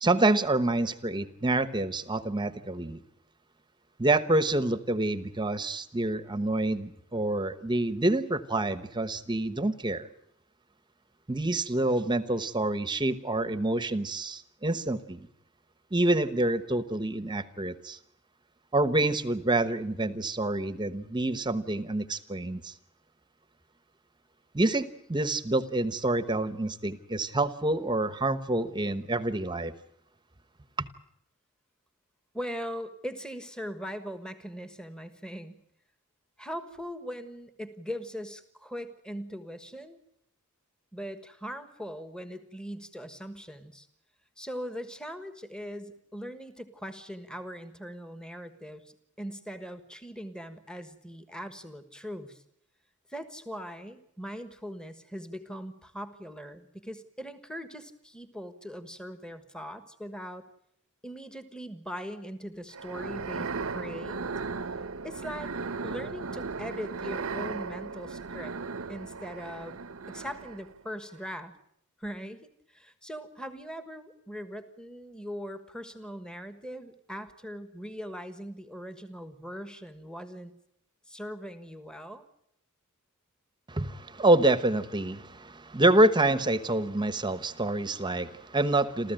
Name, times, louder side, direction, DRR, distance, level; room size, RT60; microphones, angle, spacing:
voice 1, 0.0-3.0 4.0-10.1 11.3-15.3 15.9-18.0 18.7-22.7 24.5-29.7 30.8-30.9 83.7-89.1, right 2 dB, 20° right, 13 dB, 1.0 m, -27 dB
voice 2, 32.3-35.6 36.4-40.0 40.9-43.9 44.4-52.4 53.1-60.4 61.0-64.2 65.0-65.5 65.8-68.5 68.9-69.8 70.1-71.5 72.0-80.5 81.1-82.2, equal, 5° left, 9 dB, 1.4 m, -40 dB
sound 1, 62.7-70.8, right 4 dB, 70° right, 0.9 m, -36 dB
29.0 x 14.0 x 9.0 m, 0.74 s
head